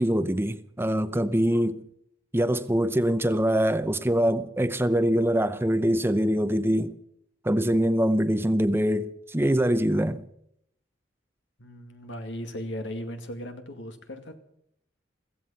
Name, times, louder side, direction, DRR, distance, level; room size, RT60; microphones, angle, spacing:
voice 1, 0.0-1.8 2.3-6.9 7.4-10.2, equal, 15° right, 0.7 m, -24 dB
voice 2, 11.6-14.3, equal, 80° left, 2.2 m, -37 dB
16.0 x 15.5 x 5.7 m
head